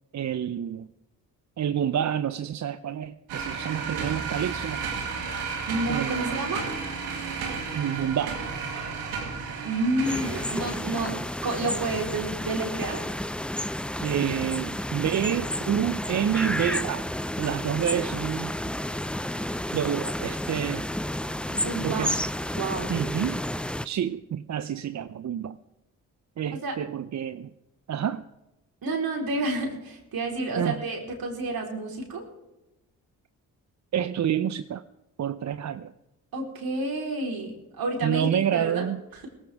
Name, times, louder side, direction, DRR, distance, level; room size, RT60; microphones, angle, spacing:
voice 1, 0.1-0.9 1.6-4.8 5.9-6.6 7.7-8.4 14.0-17.1 17.4-18.5 19.7-20.9 21.8-22.2 22.9-23.4 23.8-25.6 26.4-27.5 27.9-28.2 30.6-30.8 33.9-34.8 35.2-35.9 38.0-39.0, right 9 dB, 45° right, 12 dB, 0.6 m, -28 dB
sound 1, 3.3-10.8, right 5 dB, 85° right, 2.4 m, -33 dB
voice 2, 5.7-6.6 9.6-13.0 21.5-22.1 22.5-22.9 26.5-26.8 28.8-32.2 36.3-39.3, right 2 dB, 65° right, 1 dB, 4.2 m, -30 dB
sound 2, 10.0-23.9, left 1 dB, 5° left, 0.6 m, -31 dB
18.0 x 16.5 x 3.5 m, 0.96 s
supercardioid pair, 45°, 38 cm